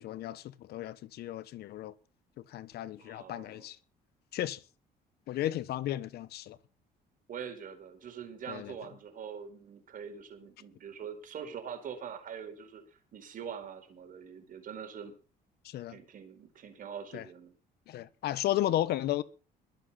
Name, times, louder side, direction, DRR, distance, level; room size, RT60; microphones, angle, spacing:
voice 1, 0.0-1.9 2.5-3.8 4.3-4.6 5.3-6.6 8.5-8.7 15.6-15.9 17.1-17.2 17.9-19.2, left 13 dB, 70° left, 1.1 m, -34 dB
voice 2, 3.0-3.7 7.3-15.1 15.9-17.6, right 7 dB, 55° right, 4.6 m, -44 dB
22.0 x 7.7 x 5.8 m
cardioid pair, 110°, 17 cm